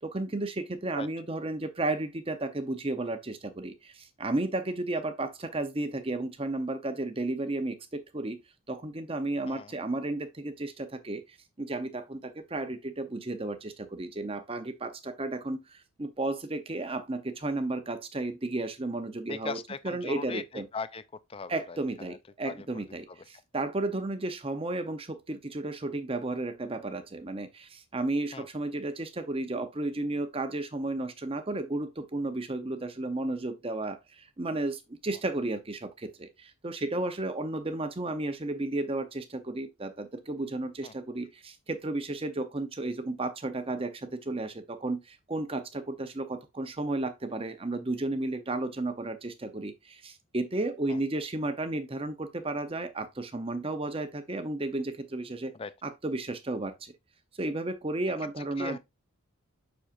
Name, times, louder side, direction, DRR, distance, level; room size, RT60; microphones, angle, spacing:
voice 1, 0.0-8.4 8.7-19.6 19.8-20.7 21.5-55.5 55.8-56.9 57.4-58.8, right 2 dB, 25° right, 0.7 m, -33 dB
voice 2, 19.3-21.0 21.3-22.2 22.4-22.8 28.3-28.4 40.8-40.9 50.9-51.0 55.5-55.7 58.4-58.8, left 4 dB, 25° left, 0.4 m, -39 dB
7.3 x 6.3 x 2.5 m
head